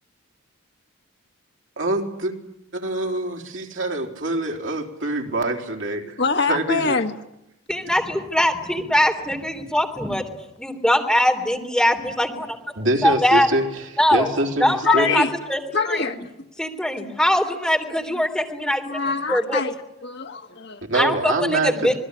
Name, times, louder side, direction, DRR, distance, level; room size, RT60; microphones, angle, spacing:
voice 1, 1.8-2.3 2.7-6.2 6.5-7.0 12.8-15.2 20.8-21.7, right 2 dB, 60° right, 2 dB, 3.7 m, -25 dB
voice 2, 6.2-7.1 14.8-15.3 15.7-16.1 18.9-19.7 20.0-20.8, left 4 dB, 55° left, 5 dB, 1.6 m, -24 dB
voice 3, 7.7-10.2 10.6-12.6 13.0-13.5 14.0-14.3 14.6-15.6 15.9-16.1 16.6-18.8 19.3-19.6 20.9-21.9, left 1 dB, 5° left, 2 dB, 3.4 m, -21 dB
27.5 x 20.5 x 9.9 m, 0.88 s
head